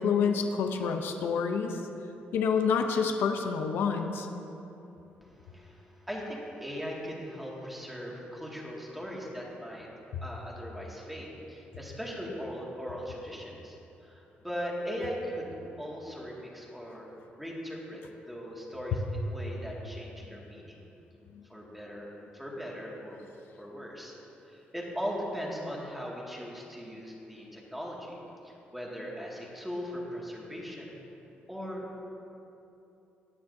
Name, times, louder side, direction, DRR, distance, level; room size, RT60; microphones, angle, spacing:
voice 1, 0.0-1.8 2.3-4.3, left 6 dB, 80° left, 5 dB, 0.7 m, -28 dB
voice 2, 5.2-9.9 10.2-15.5 15.8-17.1 17.4-20.8 21.5-22.1 22.3-23.2 23.6-24.1 24.4-31.0 31.5-31.9, equal, 5° right, -4 dB, 2.1 m, -39 dB
17.5 x 9.5 x 2.7 m, 3.0 s
cardioid pair, 115°, 4 cm